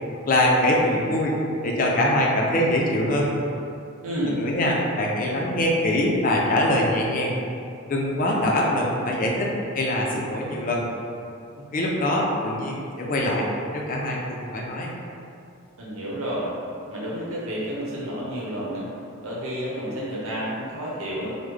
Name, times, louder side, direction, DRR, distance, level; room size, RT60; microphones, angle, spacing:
voice 1, 0.3-1.4 1.6-3.3 4.4-7.4 7.9-10.9 11.7-14.9, left 1 dB, 40° left, -2 dB, 0.4 m, -23 dB
voice 2, 4.0-4.4 15.8-16.5 16.9-18.9 19.2-21.4, equal, 85° right, -6 dB, 0.8 m, -30 dB
3.2 x 2.0 x 3.6 m, 2.5 s
head